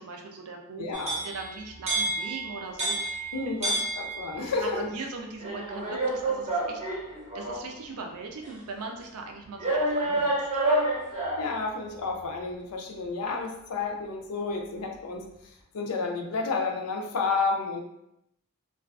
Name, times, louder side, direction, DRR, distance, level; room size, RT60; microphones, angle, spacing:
voice 1, 0.0-0.8 1.2-3.3 3.6-3.8 4.6-6.8 7.3-10.5, right 3 dB, 75° right, 2 dB, 0.4 m, -39 dB
voice 2, 0.8-1.2 3.3-4.9 11.4-15.3 15.7-17.8, left 4 dB, 85° left, 1 dB, 0.4 m, -31 dB
sound 1, 0.9-4.6 5.4-7.7 8.4-8.5 9.6-11.6, right 2 dB, 30° right, 0.6 m, -29 dB
2.4 x 2.3 x 2.3 m, 0.80 s
head